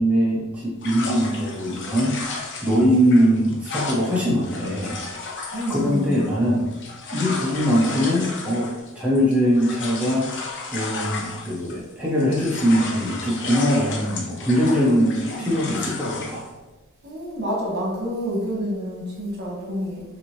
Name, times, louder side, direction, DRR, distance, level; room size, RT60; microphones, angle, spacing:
voice 1, 0.0-2.2 2.6-5.0 5.7-6.6 7.1-10.3 10.7-16.5, equal, 5° right, -7 dB, 0.6 m, -21 dB
sound 1, 0.8-11.9 12.2-16.5, left 3 dB, 55° left, 0.7 m, -34 dB
voice 2, 5.5-6.3 14.5-15.8 17.0-20.0, equal, 50° right, -3 dB, 1.3 m, -29 dB
5.8 x 2.7 x 3.0 m, 1.2 s
head